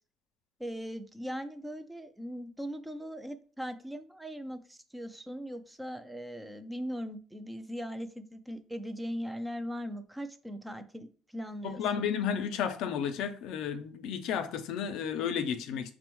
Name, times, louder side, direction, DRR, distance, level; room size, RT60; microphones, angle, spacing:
voice 1, 0.6-12.1, equal, 5° right, 0.3 m, -39 dB
voice 2, 11.6-15.9, left 7 dB, 75° left, 0.4 m, -32 dB
5.1 x 2.1 x 3.0 m
cardioid pair, 105°, 0 cm